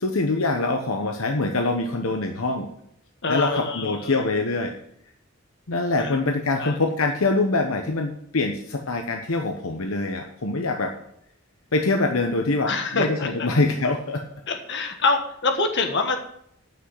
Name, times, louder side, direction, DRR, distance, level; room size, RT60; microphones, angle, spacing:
voice 1, 0.0-2.7 3.3-4.7 5.7-10.9 11.7-14.2, left 2 dB, 75° left, 4 dB, 1.0 m, -24 dB
voice 2, 3.2-4.2 6.0-6.2 6.6-6.7 12.6-13.5 14.5-16.2, left 3 dB, 55° left, 5 dB, 1.5 m, -25 dB
9.3 x 6.1 x 8.0 m, 0.70 s
head